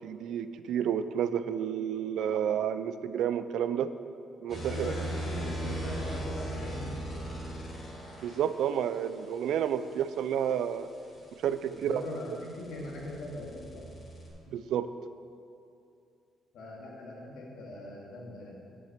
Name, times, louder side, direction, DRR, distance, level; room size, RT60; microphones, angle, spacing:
voice 1, 0.0-3.9 4.4-4.9 8.2-10.9 11.4-12.0 14.5-14.9, right 9 dB, 80° right, 12 dB, 0.4 m, -30 dB
sound 1, 4.5-8.4 10.6-14.3, right 1 dB, 45° left, 2.5 m, -38 dB
voice 2, 4.7-7.4 11.7-13.9 16.5-18.6, left 1 dB, 85° left, -3 dB, 2.0 m, -40 dB
9.5 x 5.9 x 5.8 m, 2.5 s
cardioid pair, 90°, 0 cm